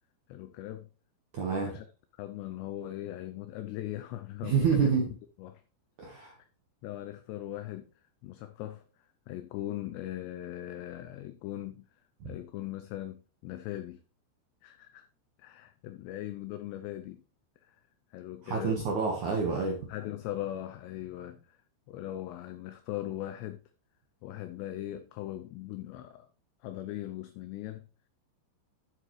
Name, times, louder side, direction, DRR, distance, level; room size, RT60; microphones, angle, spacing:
voice 1, 0.3-0.9 1.6-1.8 2.2-5.0 5.4-5.6 6.8-7.9 8.2-8.9 9.3-11.9 12.2-14.0 14.6-15.1 15.4-17.2 17.6-17.8 18.1-18.8 19.9-21.6 21.9-23.6 24.2-26.3 26.6-27.8, left 13 dB, 90° left, 2.4 m, -39 dB
voice 2, 1.3-1.8 4.4-5.1 6.0-6.4 12.2-12.3 18.4-19.8, right 5 dB, 70° right, 1.8 m, -28 dB
10.0 x 7.9 x 3.2 m
omnidirectional pair, 5.7 m